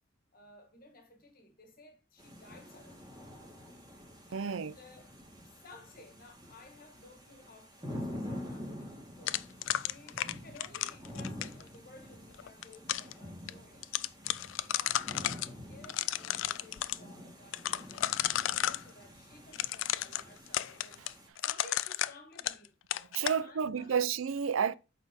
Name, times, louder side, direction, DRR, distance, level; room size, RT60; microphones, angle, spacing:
voice 1, 0.3-3.1 4.3-5.1 5.4-13.9 14.5-22.8 23.2-24.0, left 2 dB, 45° left, 1.6 m, -56 dB
sound 1, 2.2-21.3, left 1 dB, 20° right, 2.3 m, -47 dB
voice 2, 4.3-4.7 23.1-24.7, right 7 dB, 90° right, 0.5 m, -31 dB
sound 2, 9.3-11.6 12.4-13.1 13.5-13.6 13.8-15.5 15.8-17.0 17.5-18.8 19.5-22.7 22.9-23.4, left 13 dB, 80° left, 0.4 m, -33 dB
7.9 x 4.2 x 4.3 m
head